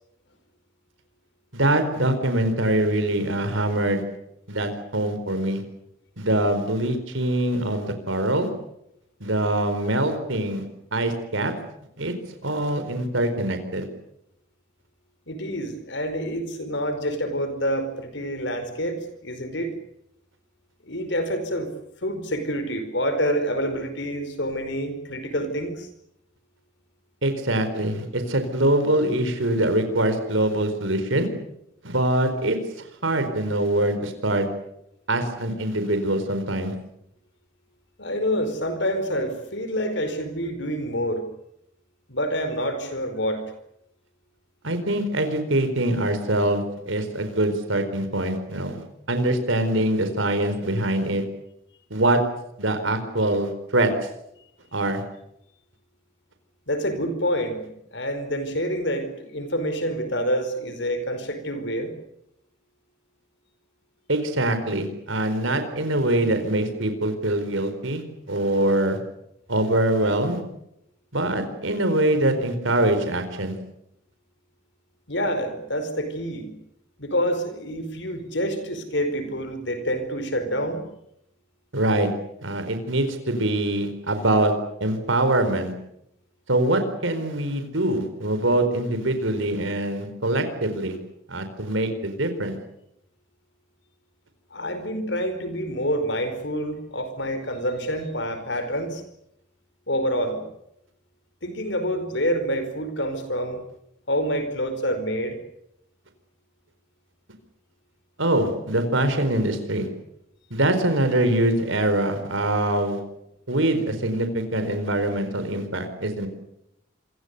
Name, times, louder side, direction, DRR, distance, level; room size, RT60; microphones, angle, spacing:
voice 1, 1.5-4.0 4.5-5.6 6.2-8.5 9.2-10.6 10.9-11.5 12.0-12.1 12.4-13.9 27.2-31.3 31.8-34.5 35.1-36.7 44.6-51.2 51.9-52.2 52.6-53.9 54.7-55.0 64.1-69.0 69.5-70.4 71.1-73.6 81.7-82.1 82.4-84.5 84.8-85.7 86.5-91.0 91.3-92.6 108.2-109.9 110.5-113.0 113.5-116.3, right 1 dB, 80° right, 8 dB, 4.4 m, -23 dB
voice 2, 15.3-19.7 20.8-21.7 22.0-25.9 38.0-41.2 42.1-43.4 56.7-57.6 57.9-61.9 75.1-76.5 77.0-80.8 94.5-99.0 99.9-100.4 101.4-103.6 104.1-105.4, equal, 60° left, 10 dB, 5.0 m, -27 dB
27.0 x 24.0 x 6.9 m, 0.79 s
head